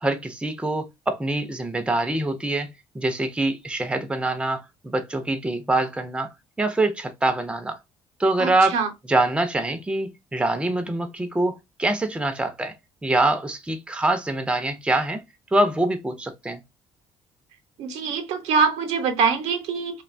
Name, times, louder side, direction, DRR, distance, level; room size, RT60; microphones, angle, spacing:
voice 1, 0.0-6.3 6.6-7.8 8.2-8.8 9.1-12.7 13.0-15.2 15.5-16.6, right 2 dB, 10° right, 0.5 m, -24 dB
voice 2, 8.4-8.9 17.8-20.0, right 5 dB, 75° right, 0.7 m, -24 dB
2.6 x 2.2 x 2.5 m
supercardioid pair, 75°, 11 cm